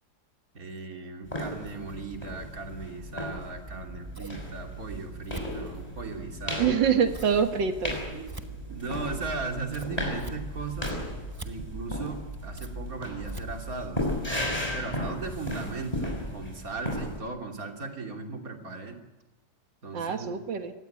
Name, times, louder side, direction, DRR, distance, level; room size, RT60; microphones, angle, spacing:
voice 1, 0.5-6.8 8.1-11.0 11.4-14.1 14.7-19.0 19.8-20.4, right 3 dB, 50° right, 3 dB, 3.4 m, -37 dB
sound 1, 1.2-17.2, left 1 dB, 20° left, 6.1 m, -36 dB
Scissors, 3.7-14.4, right 3 dB, 15° right, 1.0 m, -44 dB
voice 2, 6.6-8.0 19.9-20.7, right 7 dB, 85° right, 7 dB, 2.2 m, -25 dB
24.5 x 17.5 x 9.3 m, 1.1 s
omnidirectional pair, 2.0 m